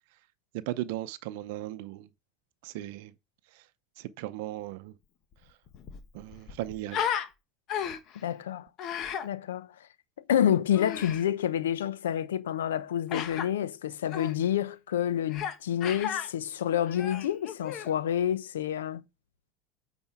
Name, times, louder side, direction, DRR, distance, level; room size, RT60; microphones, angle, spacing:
voice 1, 0.5-2.1 2.6-3.1 3.5-3.7 4.0-4.9 6.1-7.0, right 15 dB, 70° right, 0.6 m, -37 dB
Human voice, 5.3-5.4 5.7-7.3 7.7-8.2 8.8-9.3 10.7-11.2 13.1-13.5 14.1-14.3 15.3-15.6 15.8-16.3 16.8-17.9, left 8 dB, 50° left, 1.4 m, -34 dB
voice 2, 8.1-8.7 9.2-9.7 10.3-19.0, left 10 dB, 85° left, 0.7 m, -28 dB
8.8 x 4.4 x 4.6 m
hypercardioid pair, 85°, 0 cm